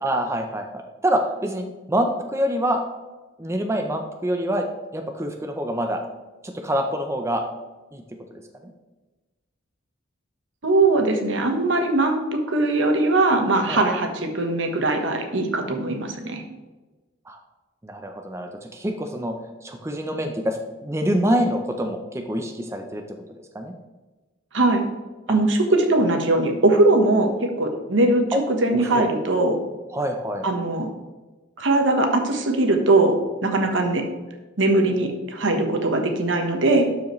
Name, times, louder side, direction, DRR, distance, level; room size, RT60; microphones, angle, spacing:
voice 1, 0.0-2.8 3.4-4.6 4.9-6.0 6.4-7.4 7.9-8.0 8.3-8.7 13.7-13.8 17.3-17.4 17.8-19.3 19.6-23.0 23.3-23.7 25.3-25.4 28.3-28.4 28.7-29.1 29.9-30.5, equal, 15° right, 4 dB, 0.6 m, -26 dB
voice 2, 10.6-16.4 24.5-24.8 25.3-27.3 27.6-29.6 30.4-30.9 31.6-33.2 33.4-34.0 34.6-36.9, right 2 dB, 70° right, 4 dB, 1.2 m, -20 dB
12.0 x 4.9 x 3.1 m, 1.2 s
head